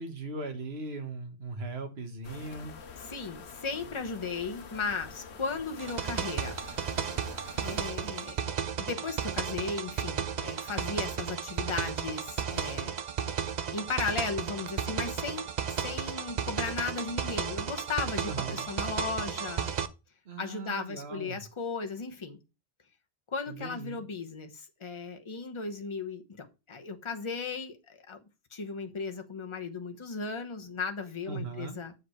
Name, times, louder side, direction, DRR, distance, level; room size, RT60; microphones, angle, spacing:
voice 1, 0.0-2.7 18.2-18.6 20.2-21.4 23.5-24.0 31.3-31.8, right 3 dB, 70° right, 1.6 m, -39 dB
sound 1, 2.2-7.9, left 5 dB, 75° left, 1.1 m, -46 dB
voice 2, 3.0-6.6 7.6-8.4 8.8-12.9 13.7-19.7 20.4-22.4 23.3-28.2 28.5-31.9, left 4 dB, 30° left, 0.9 m, -36 dB
sound 2, 5.8-19.9, right 7 dB, 50° right, 0.6 m, -34 dB
7.5 x 5.0 x 4.3 m
omnidirectional pair, 1.1 m